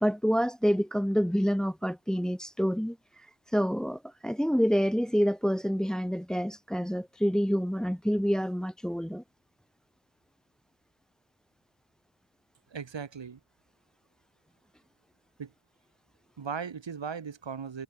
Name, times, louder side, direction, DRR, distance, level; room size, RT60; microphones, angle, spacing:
voice 1, 0.0-9.2, equal, ahead, 0.9 m, -28 dB
voice 2, 12.7-13.4 15.4-15.5 16.4-17.8, right 6 dB, 90° right, 1.6 m, -37 dB
wide cardioid pair, 50°, 43 cm